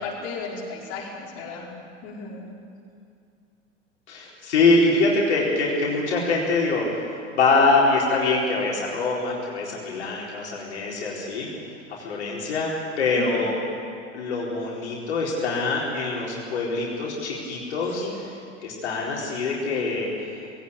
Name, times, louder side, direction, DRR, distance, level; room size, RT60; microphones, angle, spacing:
voice 1, 0.0-1.7 2.0-2.5 13.2-13.4 18.0-18.2, left 3 dB, 40° left, -3 dB, 5.0 m, -34 dB
voice 2, 4.1-6.8 7.3-11.5 12.0-12.7 13.0-13.5 14.1-18.1 18.6-20.1, left 3 dB, 65° left, -4 dB, 4.4 m, -24 dB
20.5 x 17.5 x 8.7 m, 2.4 s
figure-of-eight pair, 85°, 36 cm